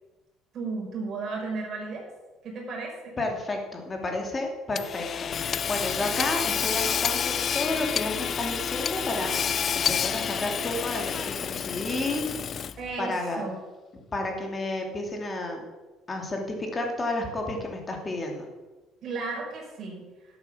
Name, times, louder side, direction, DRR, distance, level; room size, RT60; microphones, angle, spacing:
voice 1, 0.5-2.1 2.4-3.2 12.8-13.6 19.0-20.0, right 3 dB, 50° right, 0 dB, 5.0 m, -34 dB
voice 2, 3.2-12.2 13.0-13.4 14.1-15.6 16.1-18.5, left 2 dB, 25° left, 2 dB, 2.7 m, -31 dB
Hammer / Sawing, 4.7-12.9, left 7 dB, 40° left, 0.4 m, -29 dB
12.0 x 8.2 x 7.2 m, 1.2 s
cardioid pair, 120°, 0 cm